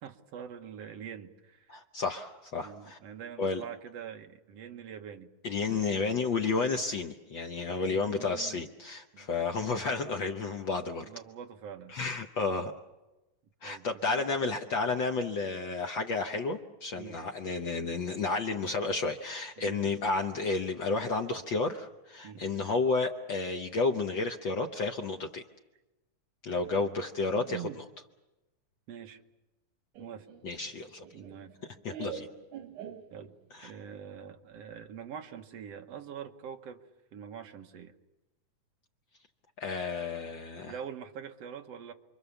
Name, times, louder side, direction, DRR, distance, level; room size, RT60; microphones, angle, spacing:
voice 1, 0.0-1.8 2.6-5.3 7.8-8.7 9.1-9.4 11.0-12.0 13.6-14.3 16.9-17.2 19.6-19.9 22.2-22.4 26.6-26.9 27.3-27.8 28.9-29.2 30.0-30.3 31.1-31.5 33.1-33.3 33.6-36.8 37.1-37.9 40.6-41.9, right 8 dB, 60° right, 5 dB, 2.1 m, -44 dB
voice 2, 1.7-3.0 3.4-3.6 5.4-11.0 11.9-12.7 13.6-25.4 26.4-27.8 30.4-31.0 31.8-32.3 33.5-33.7 39.6-40.7, left 3 dB, 65° left, 4 dB, 1.2 m, -31 dB
Laughter, 29.9-33.6, right 8 dB, 85° right, 3.1 m, -45 dB
29.0 x 23.5 x 7.1 m, 1.1 s
omnidirectional pair, 3.5 m